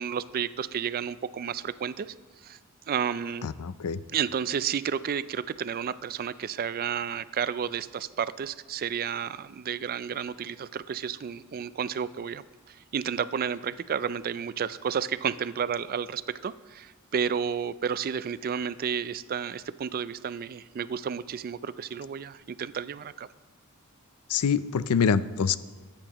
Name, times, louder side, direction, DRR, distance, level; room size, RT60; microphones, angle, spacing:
voice 1, 0.0-2.1 2.4-2.6 2.9-3.5 4.1-23.3, right 7 dB, 40° right, 16 dB, 0.3 m, -31 dB
voice 2, 3.4-4.0 24.3-25.6, left 6 dB, 80° left, 15 dB, 0.4 m, -25 dB
23.0 x 8.9 x 3.0 m, 1.4 s
head